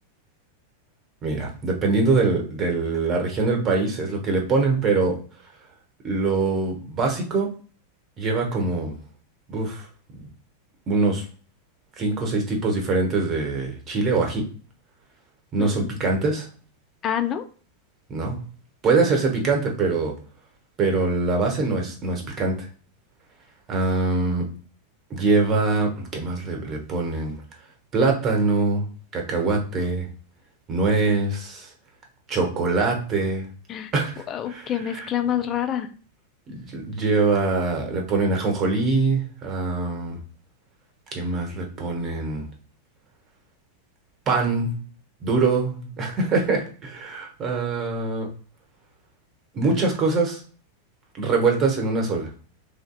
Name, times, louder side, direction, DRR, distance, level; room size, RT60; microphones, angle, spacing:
voice 1, 1.2-5.2 6.0-7.5 8.2-8.9 9.5-9.9 10.2-10.3 10.9-11.2 12.0-14.4 15.5-16.5 18.1-18.4 18.8-20.1 20.8-22.7 23.7-24.4 25.1-27.3 27.9-28.9 29.1-30.1 30.7-31.7 32.3-33.5 33.9-35.1 36.5-40.2 41.1-42.5 44.3-44.7 45.2-48.3 49.5-50.4 51.1-52.3, right 3 dB, 30° right, 2 dB, 1.0 m, -23 dB
voice 2, 17.0-17.4 33.7-33.9 34.3-35.9, left 10 dB, 30° left, 8 dB, 0.4 m, -27 dB
3.2 x 2.7 x 2.3 m, 0.40 s
figure-of-eight pair, 90°, 0 cm